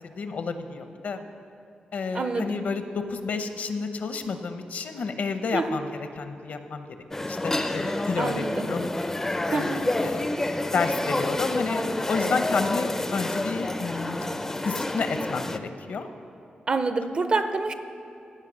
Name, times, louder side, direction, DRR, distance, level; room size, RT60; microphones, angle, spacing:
voice 1, 0.2-1.2 1.9-6.9 7.2-8.9 9.5-10.3 10.7-14.3 14.6-16.1, left 4 dB, 65° left, 8 dB, 0.7 m, -30 dB
voice 2, 2.1-2.6 5.5-5.8 8.2-8.7 9.5-9.9 16.7-17.7, right 3 dB, 40° right, 10 dB, 0.5 m, -27 dB
sound 1, 7.1-15.6, left 2 dB, 15° left, 0.4 m, -29 dB
15.5 x 5.3 x 6.2 m, 2.7 s
wide cardioid pair, 135°, 3 cm